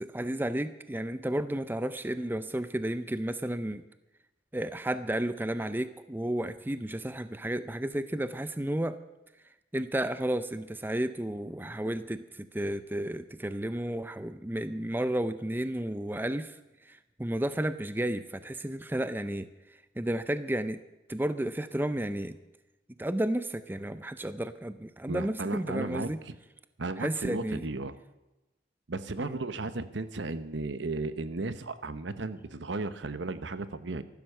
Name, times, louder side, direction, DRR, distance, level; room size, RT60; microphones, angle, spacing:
voice 1, 0.0-3.8 4.5-9.0 9.7-16.6 16.9-19.5 20.0-20.8 21.1-22.4 23.0-26.2 27.0-27.7 29.2-29.4, right 1 dB, 10° right, 12 dB, 0.5 m, -32 dB
voice 2, 25.1-26.4 26.8-27.9 28.9-34.0, right 3 dB, 75° right, 13 dB, 0.9 m, -35 dB
14.5 x 12.0 x 6.7 m, 1.0 s
head